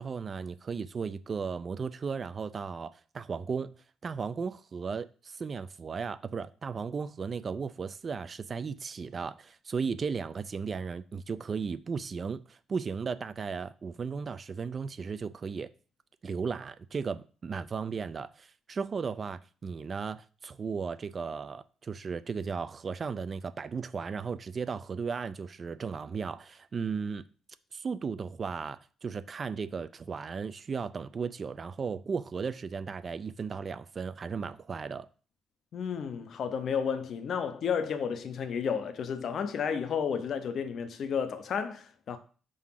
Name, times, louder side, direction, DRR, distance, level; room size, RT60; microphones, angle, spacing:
voice 1, 0.0-3.7 4.0-15.7 16.2-27.2 27.7-35.1, right 5 dB, 40° right, 0.3 m, -35 dB
voice 2, 35.7-42.2, left 7 dB, 60° left, 0.6 m, -32 dB
4.8 x 3.8 x 5.7 m
cardioid pair, 90°, 0 cm